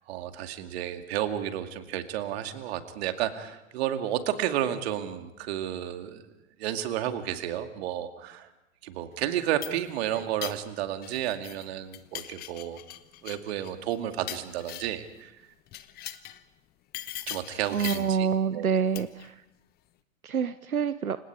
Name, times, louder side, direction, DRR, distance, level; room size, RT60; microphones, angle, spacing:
voice 1, 0.1-6.2 6.6-8.5 8.8-12.8 13.2-15.3 17.3-18.8, right 11 dB, 50° right, 7 dB, 2.4 m, -32 dB
sound 1, 9.3-11.6 11.9-15.1 15.7-16.4 16.9-18.2 18.9-19.3, left 14 dB, 25° left, 1.0 m, -41 dB
voice 2, 17.7-19.3 20.2-21.2, right 7 dB, 90° right, 14 dB, 0.8 m, -27 dB
29.5 x 26.0 x 4.9 m, 0.89 s
figure-of-eight pair, 110°, 41 cm